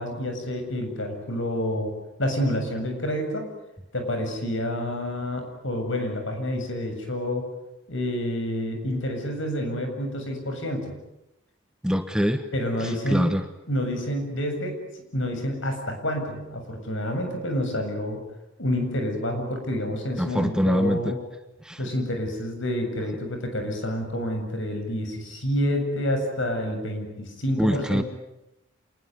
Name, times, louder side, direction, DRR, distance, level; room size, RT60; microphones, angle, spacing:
voice 1, 0.0-1.9 2.2-3.5 3.9-7.5 7.9-10.9 12.5-13.3 13.7-14.8 15.1-18.2 18.6-21.2 21.8-28.0, left 1 dB, 70° left, 5 dB, 7.6 m, -28 dB
voice 2, 11.8-12.4 13.1-13.4 20.2-21.1 21.6-21.8 27.6-28.0, equal, 5° right, 8 dB, 1.2 m, -23 dB
27.5 x 20.5 x 9.7 m, 0.89 s
head